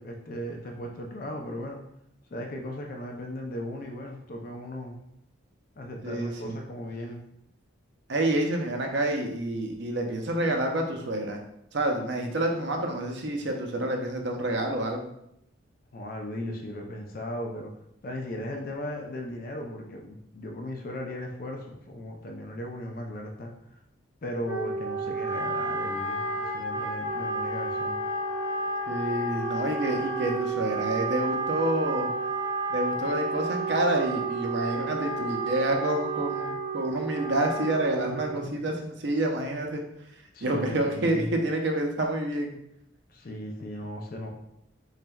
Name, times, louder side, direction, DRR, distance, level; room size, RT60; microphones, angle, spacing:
voice 1, 0.0-1.8 2.3-5.0 5.8-7.2 15.9-17.7 18.0-23.5 24.2-28.0 38.1-38.6 40.3-41.3 43.1-44.3, left 1 dB, 45° left, 1 dB, 0.4 m, -37 dB
voice 2, 6.0-6.6 8.1-11.4 11.7-15.1 28.9-32.1 32.7-39.8 40.4-42.5, right 1 dB, 60° right, 2 dB, 0.6 m, -28 dB
Wind instrument woodwind instrument, 24.4-38.5, right 3 dB, 10° right, 0.8 m, -31 dB
3.9 x 3.2 x 2.3 m, 0.77 s
head